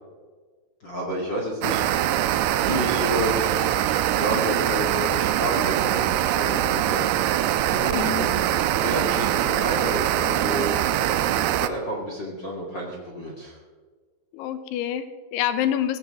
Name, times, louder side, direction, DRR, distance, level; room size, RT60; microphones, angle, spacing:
voice 1, 0.8-7.1 7.6-10.8 11.6-13.6, equal, 35° left, -2 dB, 2.0 m, -31 dB
sound 1, 1.6-11.7, right 12 dB, 85° right, 2.4 m, -23 dB
voice 2, 7.9-8.3 14.3-16.0, left 10 dB, 75° left, 10 dB, 2.8 m, -27 dB
18.0 x 15.0 x 3.8 m, 1.4 s
omnidirectional pair, 5.2 m